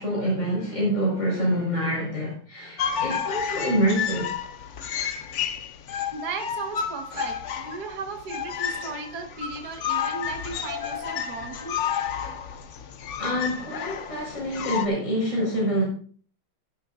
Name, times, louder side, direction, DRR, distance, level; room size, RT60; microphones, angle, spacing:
voice 1, 0.0-4.3 7.1-7.3 13.2-15.8, equal, 35° left, -4 dB, 5.4 m, -26 dB
sound 1, 2.8-14.9, left 8 dB, 80° left, 0.6 m, -31 dB
voice 2, 6.1-11.8, right 4 dB, 50° right, 3 dB, 1.9 m, -36 dB
15.5 x 10.5 x 2.6 m, 0.44 s
omnidirectional pair, 2.3 m